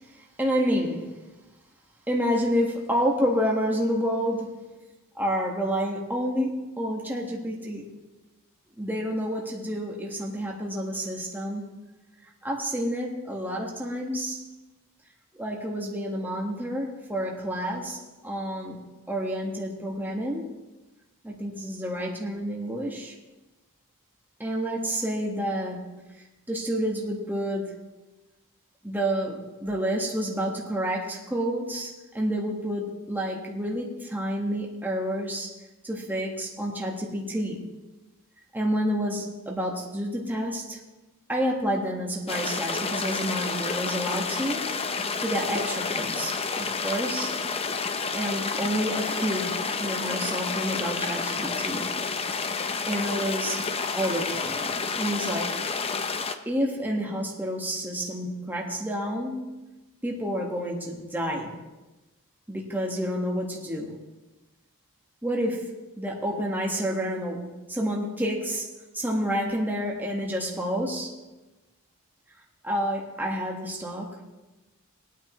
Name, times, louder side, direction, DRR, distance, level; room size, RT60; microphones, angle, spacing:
voice 1, 0.1-1.2 2.1-4.6 5.2-7.9 8.8-11.7 12.4-14.5 15.4-18.8 19.1-20.5 21.2-23.1 24.4-25.9 26.5-27.8 28.8-35.5 35.8-37.6 38.5-40.8 41.3-44.7 45.2-47.3 48.1-51.9 52.9-55.6 56.5-59.6 60.0-61.6 62.5-64.0 65.2-68.7 68.9-71.1 72.6-74.3, equal, 10° right, -2 dB, 1.6 m, -29 dB
sound 1, 42.3-56.4, left 4 dB, 25° left, 0.6 m, -30 dB
21.0 x 9.1 x 3.1 m, 1.1 s
head